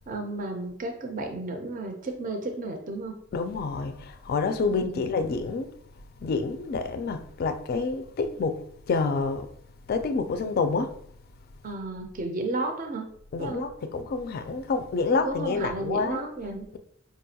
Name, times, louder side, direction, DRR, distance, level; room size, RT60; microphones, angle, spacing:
voice 1, 0.1-3.2 4.7-5.1 11.6-13.1 13.4-13.7 15.1-16.8, right 2 dB, 40° right, 0.5 m, -33 dB
voice 2, 3.3-5.7 6.2-8.6 8.9-9.5 9.9-11.0 13.3-16.2, left 4 dB, 50° left, 0.3 m, -28 dB
4.9 x 2.2 x 2.7 m
head